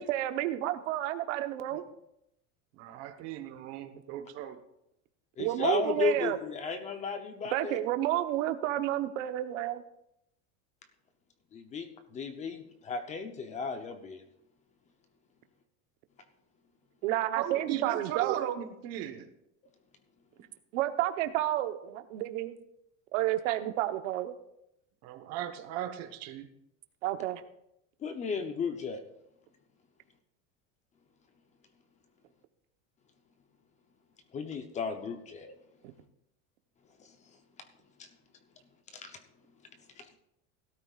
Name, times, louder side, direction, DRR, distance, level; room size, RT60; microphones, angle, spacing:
voice 1, 0.0-1.8 5.4-6.4 7.5-9.8 17.0-18.4 20.7-22.6 23.1-24.3 27.0-27.4, right 14 dB, 90° right, 9 dB, 1.1 m, -30 dB
voice 2, 2.8-4.6 17.4-19.3 25.0-26.5, right 11 dB, 45° right, 8 dB, 1.2 m, -37 dB
voice 3, 5.4-7.8 11.5-14.2 28.0-29.0 34.3-35.5 37.0-37.1 38.0-38.1 38.9-39.2 40.0-40.2, left 5 dB, 20° left, 7 dB, 0.7 m, -34 dB
17.5 x 12.5 x 2.4 m, 0.80 s
cardioid pair, 175°, 37 cm